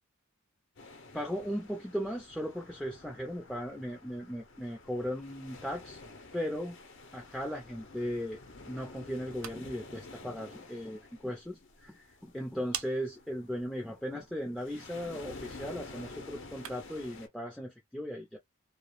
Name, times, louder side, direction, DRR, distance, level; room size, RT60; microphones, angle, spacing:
sound 1, 0.8-17.3, left 3 dB, 60° left, 0.7 m, -50 dB
voice 1, 1.1-6.0 6.3-6.8 7.1-8.4 8.7-18.4, equal, 5° left, 0.4 m, -37 dB
sound 2, 9.1-17.1, right 10 dB, 70° right, 0.4 m, -49 dB
2.3 x 2.0 x 2.9 m
head